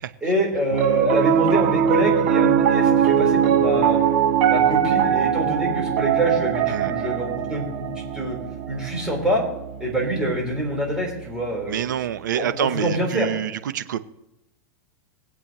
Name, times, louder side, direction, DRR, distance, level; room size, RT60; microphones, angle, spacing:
voice 1, 0.2-4.0 4.5-8.4 8.7-9.4 9.8-11.9 12.3-13.3, right 1 dB, 5° right, -2 dB, 4.1 m, -25 dB
Piano, 0.7-11.1, right 8 dB, 50° right, 1.0 m, -21 dB
voice 2, 11.7-14.0, right 10 dB, 90° right, 12 dB, 0.8 m, -26 dB
21.0 x 8.3 x 3.0 m, 0.91 s
supercardioid pair, 140°, 10 cm